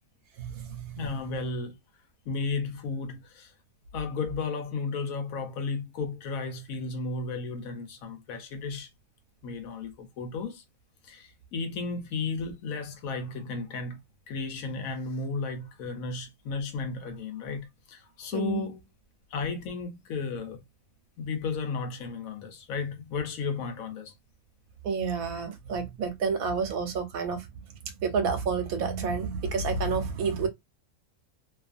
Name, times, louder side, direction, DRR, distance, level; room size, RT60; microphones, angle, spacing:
voice 1, 0.4-1.0 18.3-18.7 24.8-30.5, right 5 dB, 80° right, 1.2 m, -30 dB
voice 2, 0.9-1.8 2.3-3.5 3.9-8.9 9.4-10.6 11.0-14.0 14.3-18.8 19.3-20.6 21.2-24.1, left 4 dB, 80° left, 1.1 m, -34 dB
2.8 x 2.4 x 2.4 m
omnidirectional pair, 1.5 m